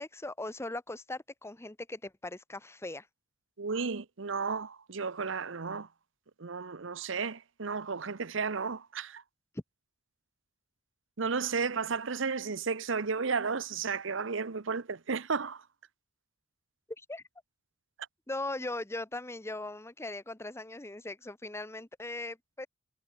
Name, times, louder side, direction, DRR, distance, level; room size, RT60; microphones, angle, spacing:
voice 1, 0.0-3.1 17.1-17.2 18.3-22.7, left 2 dB, 15° left, 1.0 m, -39 dB
voice 2, 3.6-5.9 6.4-9.2 11.2-15.6, right 5 dB, 70° right, 0.9 m, -33 dB
head